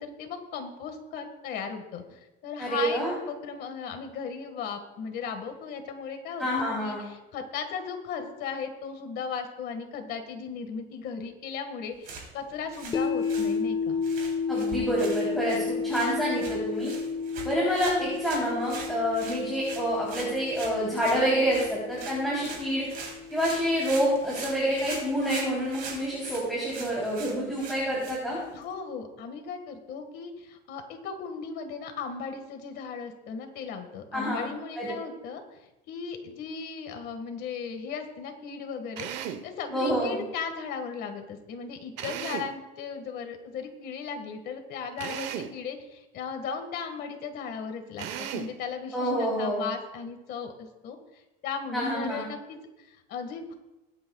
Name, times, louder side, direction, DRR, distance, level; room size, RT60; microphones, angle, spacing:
voice 1, 0.0-3.0 3.3-6.5 6.8-14.0 28.5-35.4 35.9-53.5, left 6 dB, 60° left, 6 dB, 1.7 m, -37 dB
voice 2, 2.6-3.1 6.4-7.0 14.5-16.9 17.4-22.8 23.3-28.4 34.1-34.5 34.8-34.9 39.7-40.2 48.9-49.6 51.7-52.3, equal, ahead, -7 dB, 3.3 m, -27 dB
sound 1, 11.9-28.7, right 4 dB, 50° right, 3.4 m, -43 dB
sound 2, 12.9-25.0, left 5 dB, 25° left, 0.8 m, -33 dB
Drill, 39.0-39.5 42.0-42.6 45.0-45.6 48.0-48.6, right 9 dB, 75° right, 1.0 m, -35 dB
22.5 x 9.0 x 2.4 m, 1.0 s
cardioid pair, 155°, 19 cm